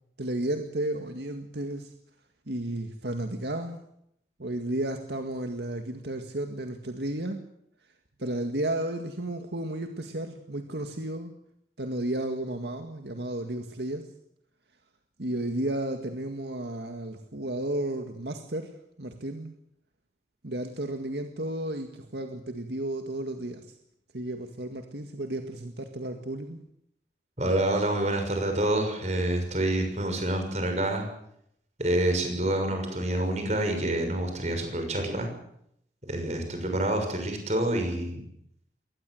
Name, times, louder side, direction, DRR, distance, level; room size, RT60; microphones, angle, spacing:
voice 1, 0.2-1.9 2.5-3.8 4.4-7.4 8.2-11.3 11.8-14.1 15.2-18.7 19.0-19.5 20.4-23.7 24.1-26.6, right 1 dB, 75° right, 5 dB, 2.0 m, -33 dB
voice 2, 27.4-31.0 31.8-35.3 36.1-38.2, right 1 dB, 40° right, 5 dB, 6.4 m, -27 dB
23.0 x 19.0 x 7.9 m, 0.74 s
head